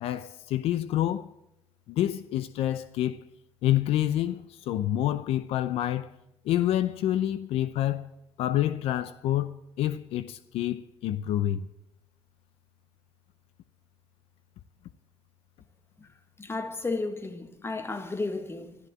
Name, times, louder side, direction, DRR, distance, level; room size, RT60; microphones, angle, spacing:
voice 1, 0.0-1.3 1.9-3.2 3.6-6.1 6.4-8.1 8.4-11.7, left 12 dB, 90° left, 0.6 m, -28 dB
voice 2, 16.4-18.8, left 3 dB, 25° left, 1.8 m, -33 dB
13.5 x 13.0 x 7.6 m
cardioid pair, 90°, 10 cm